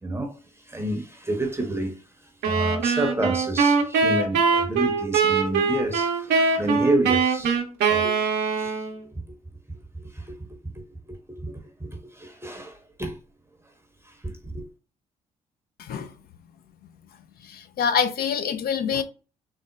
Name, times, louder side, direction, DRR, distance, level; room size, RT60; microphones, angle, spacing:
voice 1, 0.0-7.6 7.9-8.1 8.5-9.2 9.9-13.2 14.0-14.7, right 1 dB, 15° right, 0.7 m, -30 dB
sound 1, 2.4-9.0, right 5 dB, 75° right, 0.6 m, -22 dB
voice 2, 17.5-19.0, left 7 dB, 60° left, 0.5 m, -25 dB
3.9 x 2.0 x 2.3 m
hypercardioid pair, 50°, 18 cm